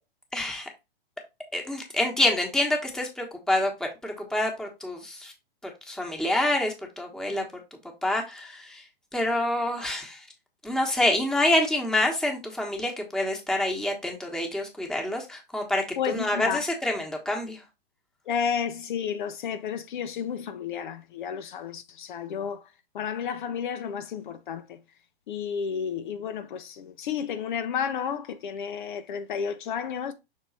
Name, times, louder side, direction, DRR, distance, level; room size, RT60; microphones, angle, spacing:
voice 1, 0.3-0.7 1.5-5.3 5.9-7.4 8.0-8.8 9.1-10.2 10.6-17.6, left 1 dB, ahead, 1.3 m, -27 dB
voice 2, 16.0-16.6 18.3-24.8 25.3-30.1, left 7 dB, 55° left, 0.8 m, -32 dB
6.3 x 3.8 x 4.1 m
hypercardioid pair, 135°, 30 cm